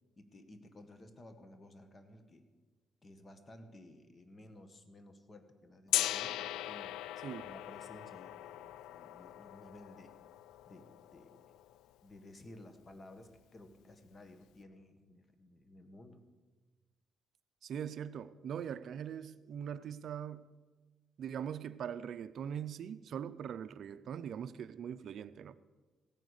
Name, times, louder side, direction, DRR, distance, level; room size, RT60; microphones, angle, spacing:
voice 1, 0.2-2.5 3.0-7.0 7.4-10.1 10.7-11.4 12.0-16.2, left 1 dB, 30° left, 1.6 m, -55 dB
Gong, 5.9-11.8, left 13 dB, 90° left, 0.3 m, -39 dB
voice 2, 17.6-20.5 21.2-25.6, right 8 dB, 65° right, 0.5 m, -41 dB
16.0 x 9.2 x 6.5 m
cardioid pair, 90°, 0 cm